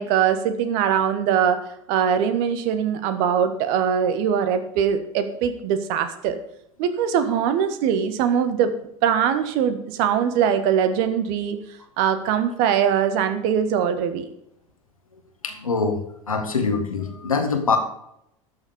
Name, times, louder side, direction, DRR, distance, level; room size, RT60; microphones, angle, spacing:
voice 1, 0.0-1.6 1.9-6.4 6.8-8.7 9.0-11.6 12.0-14.2, right 8 dB, 55° right, 9 dB, 1.5 m, -22 dB
voice 2, 15.4-16.0 16.3-17.8, left 4 dB, 85° left, 5 dB, 1.7 m, -23 dB
12.5 x 7.1 x 5.3 m, 0.76 s
figure-of-eight pair, 75°, 17 cm